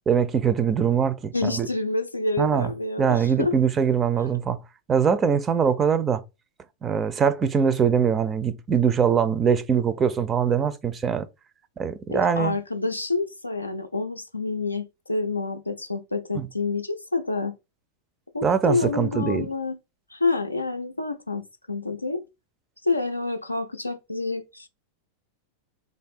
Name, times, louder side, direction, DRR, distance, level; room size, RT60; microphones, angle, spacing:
voice 1, 0.1-1.7 2.4-2.7 3.0-4.6 4.9-6.2 6.8-11.3 11.8-12.5 16.3-16.5 18.4-19.5, right 7 dB, 20° right, 0.4 m, -22 dB
voice 2, 1.3-3.6 12.1-17.6 18.3-19.8 20.1-22.2 22.8-24.7, left 3 dB, 85° left, 0.4 m, -28 dB
3.2 x 2.5 x 4.1 m
figure-of-eight pair, 90°, 0 cm